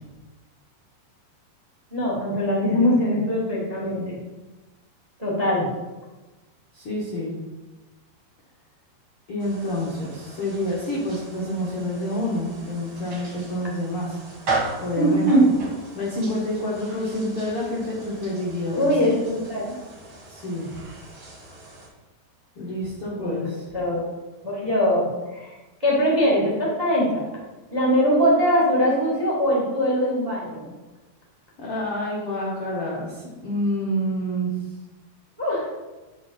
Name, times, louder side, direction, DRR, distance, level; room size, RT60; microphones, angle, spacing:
voice 1, 1.9-4.1 5.2-5.7 14.9-15.5 18.7-19.8 23.1-23.5 23.7-24.0 24.4-25.5 25.8-27.2 27.7-30.7 35.4-35.7, equal, 15° right, -5 dB, 1.3 m, -21 dB
voice 2, 6.7-7.3 9.3-14.2 14.8-15.3 15.9-18.9 20.3-20.7 22.6-23.6 31.6-34.5, left 1 dB, 75° left, -6 dB, 1.3 m, -28 dB
sound 1, 9.4-21.9, right 3 dB, 40° right, 2.3 m, -37 dB
8.9 x 6.2 x 4.4 m, 1.1 s
omnidirectional pair, 5.2 m